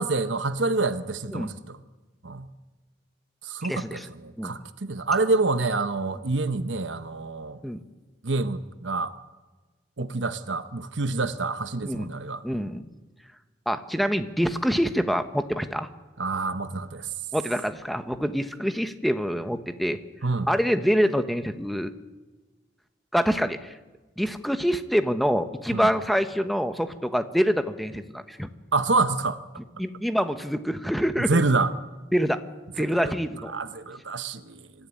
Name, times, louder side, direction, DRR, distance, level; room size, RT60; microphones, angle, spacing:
voice 1, 0.0-1.8 2.2-2.5 3.4-7.6 8.2-9.1 10.0-12.4 16.2-17.1 20.2-20.5 25.7-25.9 28.7-29.4 31.3-31.7 33.0-33.1 33.5-34.6, right 3 dB, 90° right, 11 dB, 1.1 m, -27 dB
voice 2, 3.6-4.1 4.4-4.5 7.6-7.8 10.0-10.1 11.8-12.1 12.4-12.8 13.7-15.9 17.3-20.0 20.5-21.9 23.1-23.7 24.2-28.5 29.8-31.4 32.1-32.4 32.7-33.5, equal, ahead, 9 dB, 1.0 m, -26 dB
25.0 x 14.0 x 9.9 m, 1.2 s
head